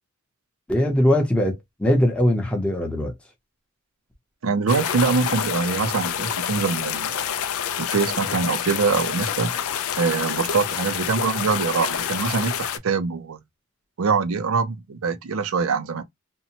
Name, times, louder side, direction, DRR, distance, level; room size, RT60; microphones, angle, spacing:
voice 1, 0.7-3.1, left 1 dB, 5° left, 0.7 m, -21 dB
voice 2, 4.4-7.2 7.8-9.5 10.0-13.4 14.0-16.0, right 5 dB, 70° right, 0.5 m, -24 dB
sound 1, 4.7-12.8, left 9 dB, 75° left, 0.4 m, -27 dB
2.7 x 2.1 x 2.7 m
head